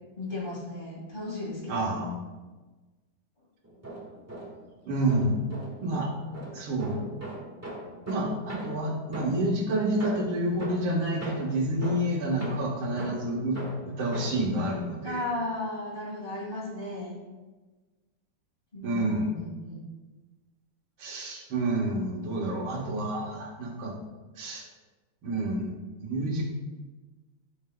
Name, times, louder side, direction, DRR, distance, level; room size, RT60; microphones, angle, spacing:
voice 1, 0.2-2.0 15.0-17.2 18.7-19.8, left 2 dB, 25° left, -5 dB, 1.9 m, -35 dB
voice 2, 1.7-2.2 4.9-5.4 5.8-6.1 6.5-7.0 8.1-13.6 13.8-15.2 18.8-19.3 21.0-24.0 24.4-24.7 25.2-25.7 26.0-26.4, right 1 dB, 80° right, -1 dB, 2.2 m, -29 dB
sound 1, 3.6-4.7 5.1-9.6 10.0-14.5, equal, 10° right, 1.3 m, -40 dB
13.0 x 6.4 x 2.2 m, 1.3 s
omnidirectional pair, 2.3 m